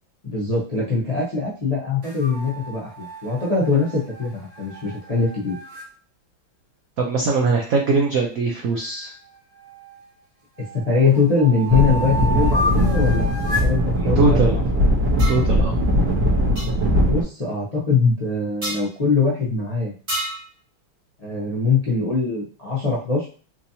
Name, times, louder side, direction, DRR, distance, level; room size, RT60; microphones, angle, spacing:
voice 1, 0.2-5.6 10.6-13.3 13.6-14.6 17.0-19.9 21.2-23.3, left 4 dB, 80° left, -7 dB, 0.3 m, -22 dB
sound 1, 2.0-5.9 8.8-10.1 10.6-13.8, left 1 dB, 45° right, 1.2 m, -31 dB
voice 2, 7.0-9.1 14.0-14.6 15.3-15.8, right 3 dB, 90° right, 0 dB, 0.7 m, -21 dB
sound 2, 11.7-17.2, equal, 65° right, 1.6 m, -20 dB
sound 3, 15.2-15.5 16.5-16.7 18.6-18.8 20.1-20.5, right 1 dB, 20° right, 0.9 m, -28 dB
4.4 x 2.7 x 2.7 m, 0.39 s
omnidirectional pair, 2.2 m